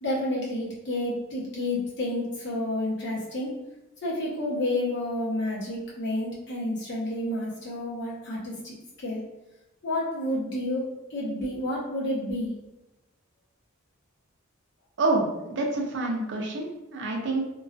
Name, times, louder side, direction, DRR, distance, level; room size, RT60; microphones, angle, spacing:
voice 1, 0.0-3.5 4.0-9.2 9.8-12.5, left 1 dB, 55° left, -6 dB, 0.8 m, -30 dB
voice 2, 15.0-17.4, right 2 dB, 55° right, 0 dB, 0.4 m, -27 dB
2.4 x 2.3 x 2.3 m, 0.98 s
head